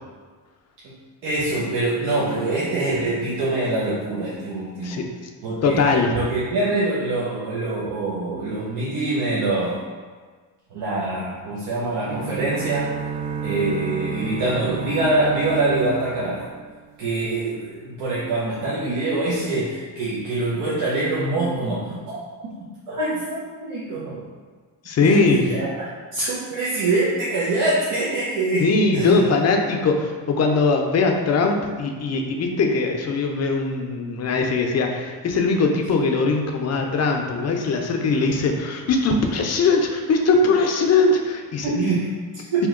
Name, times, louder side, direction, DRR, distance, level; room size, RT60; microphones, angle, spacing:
voice 1, 1.2-5.1 5.4-5.8 6.1-9.8 10.7-12.9 13.4-16.5 17.0-22.2 22.9-24.2 25.0-25.7 26.1-29.2 41.6-42.7, right 2 dB, 80° right, -7 dB, 0.7 m, -24 dB
voice 2, 4.8-5.3 5.6-6.2 24.9-25.5 28.6-41.7, left 3 dB, 40° left, 3 dB, 0.4 m, -21 dB
sound 1, 12.0-17.0, right 7 dB, 40° right, 0.5 m, -31 dB
2.8 x 2.1 x 3.6 m, 1.5 s
cardioid pair, 90°, 44 cm